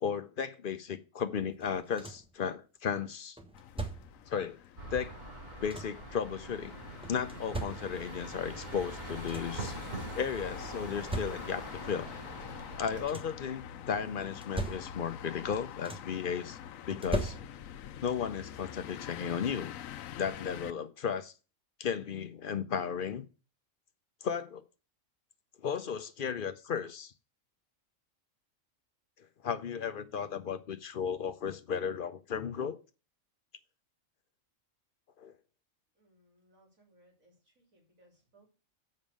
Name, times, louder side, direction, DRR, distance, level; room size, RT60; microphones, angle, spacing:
voice 1, 0.0-3.4 4.3-4.6 4.9-5.1 5.6-6.7 7.1-9.8 10.2-12.1 12.8-16.6 16.9-17.4 18.0-19.7 20.2-21.3 21.8-23.2 24.2-24.6 25.6-27.1 29.4-32.8 35.2-35.3, left 7 dB, 50° left, 0.7 m, -35 dB
sound 1, 1.6-2.4 3.4-4.3 5.3-6.1 7.0-8.2 8.8-8.9 9.1-9.7 10.6-11.8 12.7-13.5 14.2-15.3 15.5-16.3 16.9-17.9 19.2-19.3 19.8-20.0, right 1 dB, 5° right, 0.8 m, -40 dB
sound 2, 3.5-20.7, left 10 dB, 85° left, 1.0 m, -46 dB
sound 3, 4.8-13.0, right 2 dB, 35° right, 2.9 m, -43 dB
voice 2, 36.0-38.5, right 1 dB, 80° right, 3.5 m, -66 dB
7.2 x 5.3 x 6.3 m
omnidirectional pair, 1.4 m